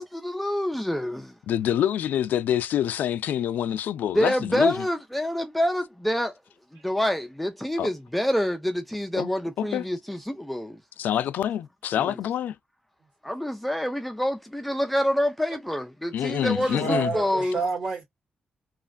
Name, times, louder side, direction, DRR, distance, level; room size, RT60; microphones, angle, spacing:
voice 1, 0.0-1.3 4.1-6.3 6.8-10.8 12.0-12.1 13.2-17.6, equal, 5° left, 0.3 m, -27 dB
voice 2, 1.5-4.9 7.8-7.9 9.2-9.8 11.0-12.5 16.1-17.1, left 10 dB, 85° left, 0.3 m, -26 dB
voice 3, 16.2-18.0, right 3 dB, 50° right, 1.9 m, -30 dB
3.1 x 2.4 x 2.4 m
wide cardioid pair, 175°, 3 cm